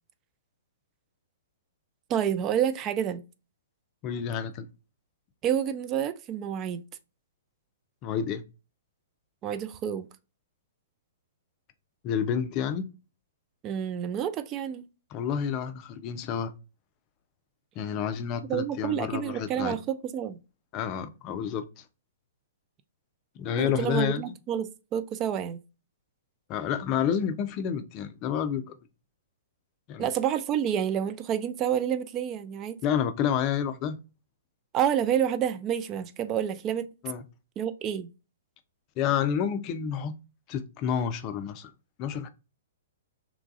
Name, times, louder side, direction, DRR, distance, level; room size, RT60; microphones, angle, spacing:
voice 1, 2.1-3.2 5.4-6.8 9.4-10.1 13.6-14.9 18.5-20.4 23.6-25.6 30.0-32.8 34.7-36.9 37.6-38.1, right 9 dB, 30° right, 0.3 m, -29 dB
voice 2, 4.0-4.7 8.0-8.4 12.0-12.9 15.1-16.5 17.8-19.8 20.7-21.6 23.4-24.3 26.5-28.7 29.9-30.1 32.8-34.0 37.0-37.2 39.0-40.1 40.5-41.7 42.0-42.3, left 8 dB, 35° left, 0.4 m, -29 dB
3.0 x 2.3 x 2.5 m
hypercardioid pair, 120°, 0 cm